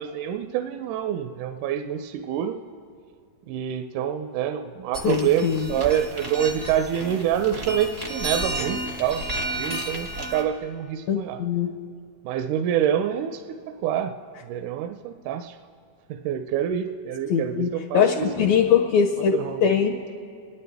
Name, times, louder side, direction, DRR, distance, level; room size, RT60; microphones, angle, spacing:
voice 1, 0.0-2.6 3.5-9.2 9.5-11.4 12.3-14.1 14.4-15.6 16.1-18.3 19.3-19.6, right 9 dB, 85° right, 7 dB, 2.0 m, -26 dB
sound 1, 4.9-10.4, right 1 dB, 35° right, 0.6 m, -32 dB
voice 2, 5.0-5.7 11.1-11.7 17.3-20.0, left 7 dB, 75° left, 1 dB, 1.8 m, -22 dB
28.5 x 11.0 x 3.4 m, 2.3 s
omnidirectional pair, 3.6 m